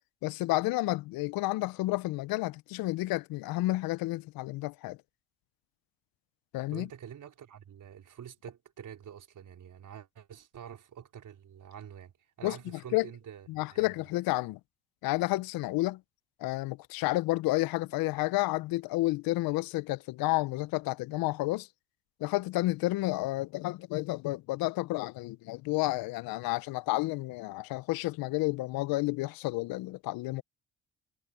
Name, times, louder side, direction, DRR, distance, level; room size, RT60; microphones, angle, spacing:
voice 1, 0.2-5.0 6.5-6.9 12.4-12.6 12.9-13.1 13.5-14.6 15.0-16.0 16.4-21.7 22.2-30.4, left 19 dB, 75° left, 0.9 m, -30 dB
voice 2, 6.7-14.1, right 9 dB, 60° right, 4.8 m, -47 dB
hypercardioid pair, 55°, 36 cm